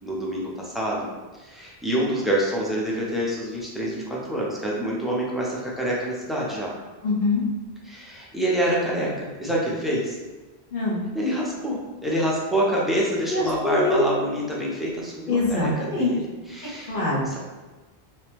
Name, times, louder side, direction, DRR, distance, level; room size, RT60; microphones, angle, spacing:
voice 1, 0.0-1.1 1.4-6.7 7.9-10.2 11.1-15.7 16.0-17.0 17.3-17.4, right 1 dB, ahead, -5 dB, 0.4 m, -26 dB
voice 2, 7.0-7.4 10.7-11.0 13.3-14.1 15.3-16.1 16.9-17.3, left 3 dB, 50° left, -5 dB, 1.0 m, -23 dB
3.1 x 2.9 x 3.3 m, 1.2 s
omnidirectional pair, 1.1 m